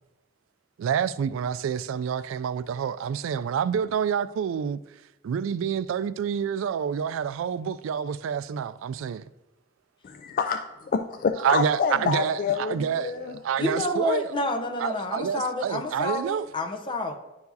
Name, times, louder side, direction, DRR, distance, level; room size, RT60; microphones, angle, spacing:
voice 1, 0.8-4.8 5.2-9.2 11.4-14.3 14.8-16.5, right 7 dB, 85° right, 0.3 m, -28 dB
voice 2, 10.0-10.6 10.9-13.4, left 6 dB, 45° left, 0.3 m, -27 dB
voice 3, 13.6-17.2, left 1 dB, 25° left, 0.7 m, -29 dB
10.5 x 4.7 x 2.7 m
head